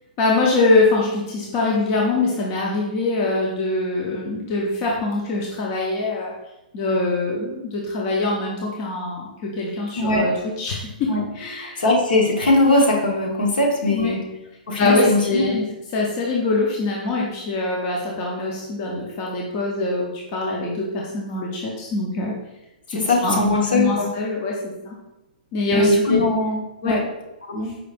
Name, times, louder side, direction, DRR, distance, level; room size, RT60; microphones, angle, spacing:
voice 1, 0.2-6.3 6.7-9.3 9.6-11.8 13.9-14.2 14.8-15.7 15.9-22.3 22.9-23.4 23.7-25.0 25.5-26.2 26.8-26.9, left 2 dB, 20° left, -2 dB, 0.4 m, -23 dB
voice 2, 9.9-10.3 11.1-11.2 11.5-14.2 14.7-15.5 22.9-24.1 25.7-27.0 27.4-27.7, left 2 dB, 70° left, -1 dB, 1.3 m, -20 dB
4.8 x 2.5 x 3.4 m, 0.95 s
hypercardioid pair, 180°, 5 cm